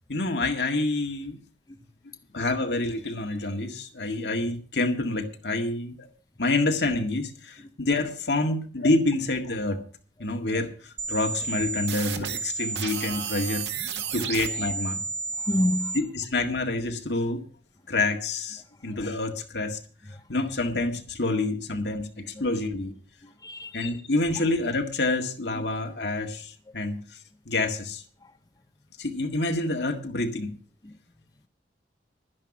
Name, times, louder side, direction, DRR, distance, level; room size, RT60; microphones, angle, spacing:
voice 1, 0.1-1.4 2.3-6.1 6.4-9.8 10.2-13.6 14.1-15.0 15.9-17.4 17.9-19.8 20.3-22.9 23.7-27.2 27.5-28.0 29.0-30.5, left 2 dB, 75° left, 1.9 m, -27 dB
sound 1, 11.0-16.0, right 5 dB, 85° right, 1.8 m, -32 dB
voice 2, 15.4-16.0 23.2-23.8 25.6-25.7 30.8-30.9, left 1 dB, 20° left, 0.7 m, -28 dB
11.5 x 10.5 x 6.0 m
head